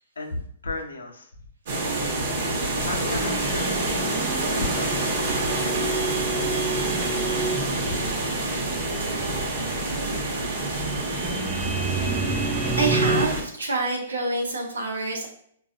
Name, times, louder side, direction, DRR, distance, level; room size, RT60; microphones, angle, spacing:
voice 1, 0.2-1.3 2.8-5.8 6.3-8.0, left 3 dB, 85° left, 3 dB, 0.6 m, -36 dB
sound 1, 1.7-13.4, right 2 dB, 65° right, 0.9 m, -27 dB
sound 2, 3.2-13.3, right 4 dB, 10° right, 0.3 m, -31 dB
voice 2, 12.8-15.3, right 3 dB, 90° right, 1 dB, 0.8 m, -26 dB
3.9 x 2.3 x 2.4 m, 0.65 s
hypercardioid pair, 130°, 0 cm